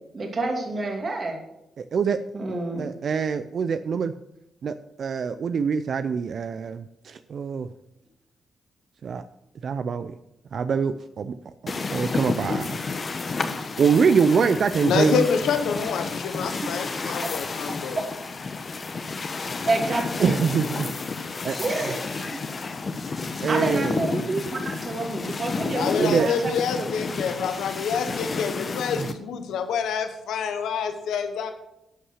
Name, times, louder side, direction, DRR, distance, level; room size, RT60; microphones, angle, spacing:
voice 1, 0.1-1.4 2.3-2.9 19.7-20.4 21.6-22.2 23.5-26.5, right 2 dB, 50° right, 2 dB, 2.5 m, -28 dB
voice 2, 1.8-2.2 2.8-4.1 4.6-7.7 9.0-9.2 9.6-10.1 10.5-11.3 11.6-12.8 13.8-15.2 20.2-20.9 21.4-21.6 23.4-24.0 26.0-26.3, right 6 dB, 65° right, 11 dB, 0.4 m, -24 dB
sound 1, 11.7-29.1, left 4 dB, 45° left, 1.0 m, -31 dB
voice 3, 14.8-18.0 25.7-31.5, left 6 dB, 85° left, 7 dB, 0.9 m, -27 dB
11.0 x 5.6 x 6.5 m, 0.87 s
cardioid pair, 65°, 0 cm